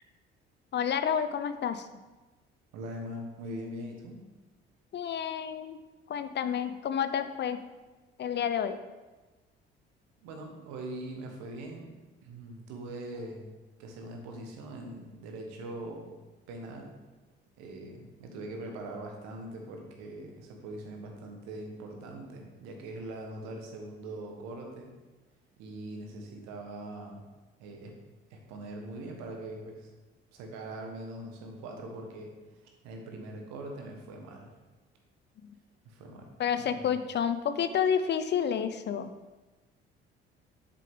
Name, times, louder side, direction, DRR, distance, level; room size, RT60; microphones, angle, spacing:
voice 1, 0.7-1.8 4.9-5.8 6.1-7.6 8.2-8.8 36.4-39.1, left 8 dB, 35° left, 11 dB, 0.5 m, -29 dB
voice 2, 2.7-4.2 10.2-11.9 12.2-13.5 13.8-16.1 16.5-16.9 17.6-24.9 25.6-27.2 27.6-27.9 28.3-29.9 30.3-32.3 32.8-34.5 35.8-36.3 36.6-37.0, right 1 dB, 65° right, 2 dB, 1.4 m, -42 dB
7.5 x 6.8 x 3.6 m, 1.2 s
figure-of-eight pair, 50°, 30 cm